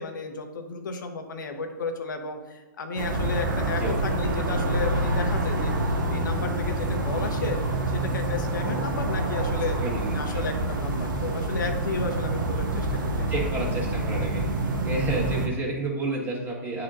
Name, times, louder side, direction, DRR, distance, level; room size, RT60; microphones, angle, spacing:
voice 1, 0.0-5.7 6.1-7.6 7.9-9.8 10.1-13.3 15.3-15.4, left 3 dB, 75° left, 5 dB, 0.9 m, -33 dB
sound 1, 3.0-15.5, right 2 dB, 85° right, 1.1 m, -27 dB
voice 2, 9.8-10.4 13.3-14.4 14.8-16.8, right 2 dB, 20° right, -2 dB, 1.7 m, -30 dB
9.3 x 4.3 x 2.6 m, 1.1 s
hypercardioid pair, 125°, 10 cm